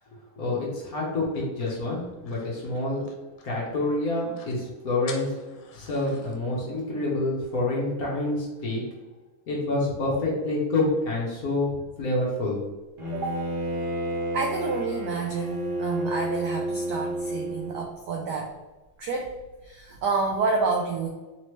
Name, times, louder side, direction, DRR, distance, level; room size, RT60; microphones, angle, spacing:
voice 1, 0.1-3.0 3.4-5.3 5.7-8.8 9.5-12.6, left 2 dB, 55° left, -4 dB, 1.2 m, -27 dB
sound 1, 1.3-3.7 4.0-4.1 4.3-4.6 5.1-6.4, left 6 dB, 85° left, 1.5 m, -46 dB
Bowed string instrument, 13.0-17.8, right 1 dB, 50° right, 0.6 m, -30 dB
voice 2, 14.3-18.5 19.0-19.3 19.6-21.1, right 4 dB, 85° right, 1 dB, 0.9 m, -29 dB
4.1 x 3.1 x 3.1 m, 1.1 s
omnidirectional pair, 2.4 m